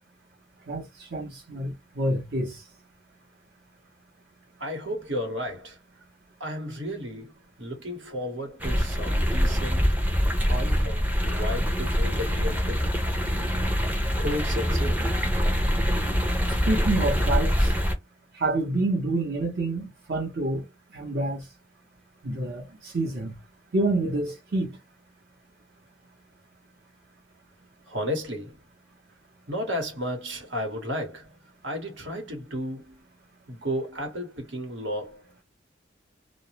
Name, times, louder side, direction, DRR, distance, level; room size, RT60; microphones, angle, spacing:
voice 1, 0.7-2.6 16.7-17.7 18.3-20.6 20.9-21.4 22.2-23.3 23.7-24.8, right 2 dB, 60° right, 0.8 m, -28 dB
voice 2, 4.6-5.8 6.4-7.3 7.6-9.8 10.5-12.9 14.2-15.0 27.9-28.6 29.5-31.3 31.6-33.0 33.5-35.4, equal, 85° right, 1.1 m, -33 dB
sound 1, 8.6-17.9, equal, 10° right, 0.4 m, -24 dB
2.2 x 2.0 x 2.8 m
head